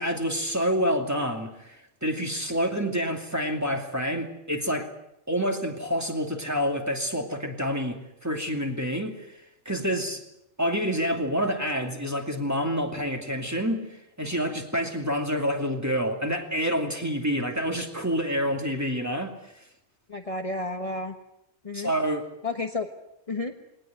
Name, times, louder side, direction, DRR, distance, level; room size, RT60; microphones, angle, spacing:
voice 1, 0.0-4.9 5.3-9.4 9.6-10.2 10.6-13.9 14.2-19.3 21.7-22.3, equal, 15° right, 3 dB, 2.6 m, -28 dB
voice 2, 20.1-21.2 21.6-21.9 22.4-22.9 23.3-23.5, left 2 dB, 30° left, 4 dB, 1.3 m, -31 dB
20.5 x 19.0 x 9.3 m, 0.81 s
omnidirectional pair, 1.2 m